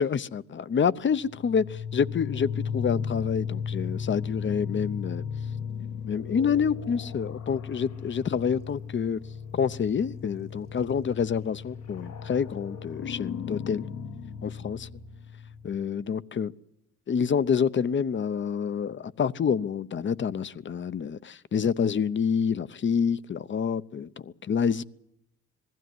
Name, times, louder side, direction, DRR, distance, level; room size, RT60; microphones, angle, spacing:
voice 1, 0.0-5.2 6.1-9.2 9.5-13.8 14.4-14.9 15.6-16.5 17.1-24.8, left 7 dB, 40° left, 0.8 m, -27 dB
sound 1, 1.2-15.8, left 6 dB, 65° left, 1.4 m, -36 dB
20.5 x 15.5 x 9.4 m
cardioid pair, 90°, 30 cm